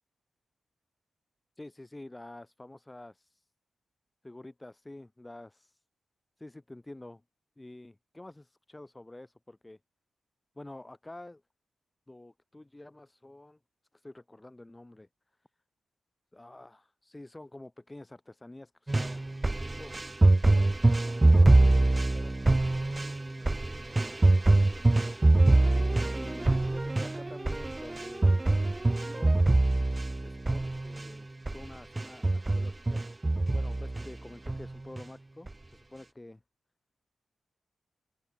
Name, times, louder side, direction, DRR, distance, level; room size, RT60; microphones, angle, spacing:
voice 1, 1.6-3.5 4.2-5.8 6.4-7.2 7.6-9.8 10.6-11.4 12.1-13.6 13.9-15.1 16.3-19.2 19.6-20.0 20.5-25.2 26.1-28.5 29.0-29.4 30.2-33.0 33.5-36.4, left 2 dB, 15° left, 5.5 m, -49 dB
sound 1, 18.9-31.1 31.5-31.6 32.0-34.1 34.5-35.0 35.5-35.6, right 2 dB, 20° right, 0.6 m, -24 dB
wide cardioid pair, 140°, 0 cm